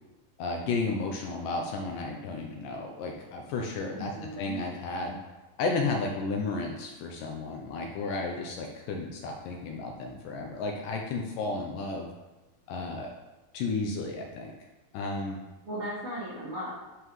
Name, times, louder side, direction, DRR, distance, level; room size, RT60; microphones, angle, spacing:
voice 1, 0.4-4.1 4.4-5.2 5.6-12.1 12.7-13.1 13.5-14.5 14.9-15.4, left 3 dB, 75° left, 1 dB, 2.1 m, -33 dB
voice 2, 3.9-4.6 15.6-16.7, right 1 dB, 55° right, -8 dB, 1.8 m, -36 dB
11.0 x 5.6 x 3.1 m, 1.1 s
omnidirectional pair, 4.3 m